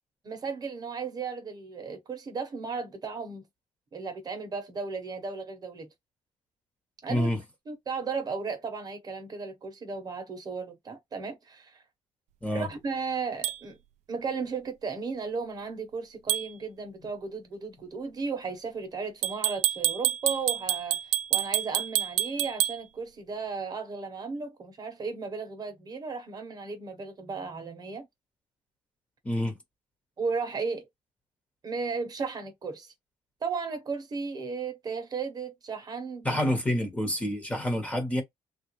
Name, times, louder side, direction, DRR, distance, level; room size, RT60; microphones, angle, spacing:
voice 1, 0.3-3.4 3.9-5.9 7.0-7.3 7.7-11.8 12.5-13.8 14.1-28.1 30.2-30.9 31.6-32.9 33.4-36.4, right 5 dB, 30° right, 0.9 m, -35 dB
voice 2, 7.1-7.4 12.4-12.7 29.2-29.6 36.2-38.2, left 1 dB, 10° left, 1.1 m, -28 dB
sound 1, 13.4-13.6 16.3-16.5 19.2-22.8, right 13 dB, 75° right, 0.4 m, -27 dB
3.4 x 2.4 x 3.0 m
cardioid pair, 170°, 12 cm